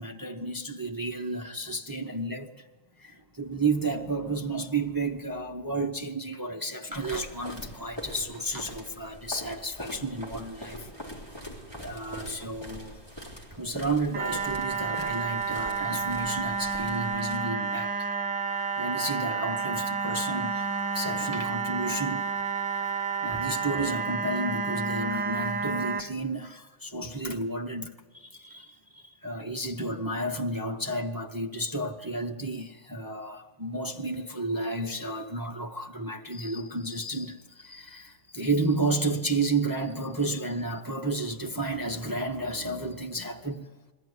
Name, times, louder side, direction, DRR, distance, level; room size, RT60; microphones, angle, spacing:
voice 1, 0.0-2.6 3.0-10.9 11.8-13.0 13.6-18.1 18.4-20.7 20.9-22.2 23.2-43.7, right 2 dB, 25° right, 0.4 m, -32 dB
sound 1, 6.9-17.4, equal, 15° left, 3.5 m, -43 dB
sound 2, 14.1-26.0, right 5 dB, 80° right, 1.8 m, -30 dB
21.5 x 14.5 x 9.6 m
omnidirectional pair, 1.9 m